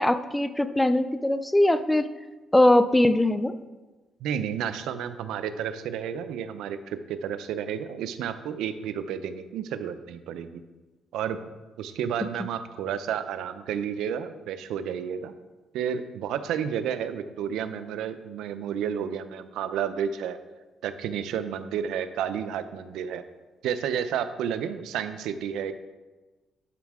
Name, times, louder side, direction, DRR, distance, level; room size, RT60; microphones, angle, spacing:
voice 1, 0.0-2.1 2.5-3.5, left 1 dB, 10° left, 12 dB, 0.4 m, -21 dB
voice 2, 4.2-10.6 11.1-11.4 11.8-15.3 15.7-20.4 20.8-23.2 23.6-25.7, right 8 dB, 85° right, 11 dB, 0.5 m, -31 dB
11.5 x 5.8 x 3.6 m, 1.2 s
cardioid pair, 90°, 0 cm